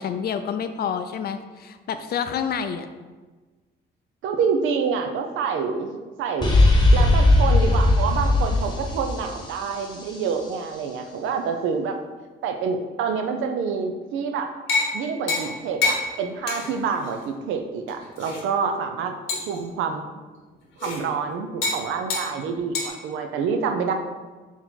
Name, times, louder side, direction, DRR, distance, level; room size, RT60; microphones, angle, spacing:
voice 1, 0.0-2.9, left 7 dB, 55° left, 9 dB, 0.4 m, -28 dB
voice 2, 4.2-5.9 6.2-6.5 6.9-12.0 12.4-14.5 14.9-19.2 19.5-20.1 20.8-23.9, right 6 dB, 85° right, 6 dB, 0.5 m, -27 dB
sound 1, 6.4-10.2, left 2 dB, 20° left, 1.0 m, -18 dB
sound 2, 14.7-14.9 15.3-15.5 15.8-16.0 16.5-16.7 17.0-17.1 17.9-18.4 19.3-19.6 20.8-21.0 21.6-21.8 22.1-22.3 22.7-22.9, left 3 dB, 80° left, 1.1 m, -25 dB
4.5 x 2.9 x 3.7 m, 1.3 s
cardioid pair, 90°, 20 cm